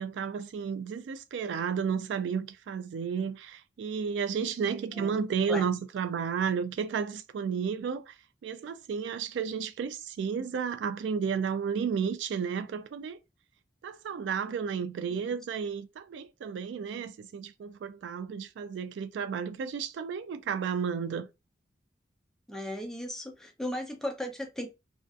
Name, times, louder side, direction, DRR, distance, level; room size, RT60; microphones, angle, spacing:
voice 1, 0.0-8.2 8.4-13.2 13.8-21.3, right 6 dB, 80° right, 0.3 m, -32 dB
voice 2, 22.5-24.7, left 1 dB, 5° left, 0.5 m, -36 dB
2.5 x 2.3 x 2.3 m
head